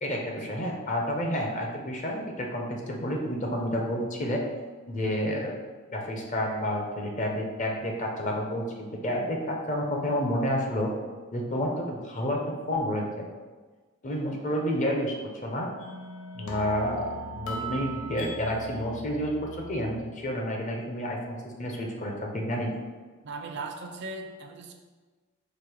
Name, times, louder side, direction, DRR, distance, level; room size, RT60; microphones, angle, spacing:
voice 1, 0.0-4.4 4.9-5.6 5.9-10.9 11.3-12.4 12.7-13.3 14.0-15.1 15.4-15.7 16.3-22.8, equal, 35° left, 0 dB, 0.7 m, -30 dB
sound 1, 15.8-20.2, right 1 dB, 85° left, 0.7 m, -39 dB
voice 2, 23.2-24.7, right 3 dB, 55° right, 4 dB, 0.4 m, -38 dB
5.0 x 2.1 x 4.5 m, 1.3 s
head